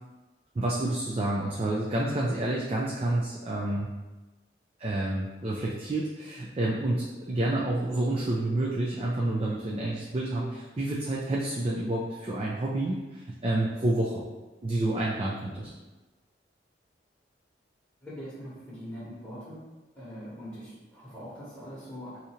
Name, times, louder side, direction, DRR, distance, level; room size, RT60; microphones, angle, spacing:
voice 1, 0.5-3.9 4.8-14.2 14.6-15.7, right 1 dB, 30° right, -3 dB, 0.4 m, -29 dB
voice 2, 18.0-19.6 19.9-22.2, equal, 10° left, -11 dB, 1.0 m, -42 dB
2.7 x 2.5 x 4.2 m, 1.1 s
head